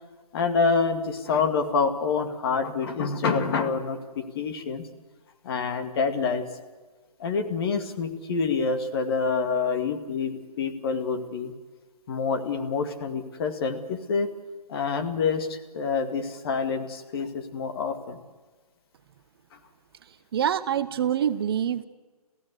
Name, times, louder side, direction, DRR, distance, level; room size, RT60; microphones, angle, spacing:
voice 1, 0.3-4.9 5.4-6.4 7.2-11.5 12.1-14.3 14.7-18.2, left 5 dB, 40° left, 7 dB, 2.2 m, -27 dB
voice 2, 20.3-21.8, right 9 dB, 40° right, 12 dB, 0.8 m, -25 dB
26.5 x 16.0 x 8.3 m, 1.3 s
hypercardioid pair, 150°, 19 cm